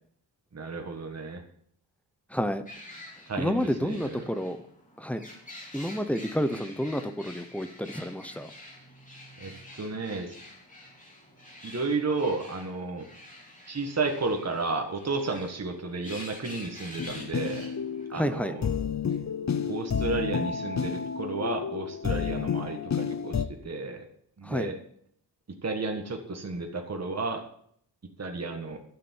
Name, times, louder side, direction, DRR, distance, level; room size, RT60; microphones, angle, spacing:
voice 1, 0.5-1.4 3.3-4.3 9.4-10.4 11.6-13.0 13.7-17.7 18.1-18.7 19.7-24.0 24.4-24.8 25.6-27.4 28.2-28.8, right 3 dB, 40° right, 3 dB, 1.7 m, -32 dB
voice 2, 2.3-2.6 3.4-4.6 5.0-5.2 5.7-8.5 18.1-18.5 24.4-24.7, equal, 5° left, 10 dB, 0.8 m, -30 dB
sound 1, 2.7-18.1, left 1 dB, 20° left, 3.8 m, -47 dB
sound 2, 17.0-23.4, left 6 dB, 40° left, 0.8 m, -31 dB
12.0 x 7.1 x 8.9 m, 0.66 s
wide cardioid pair, 160°, 41 cm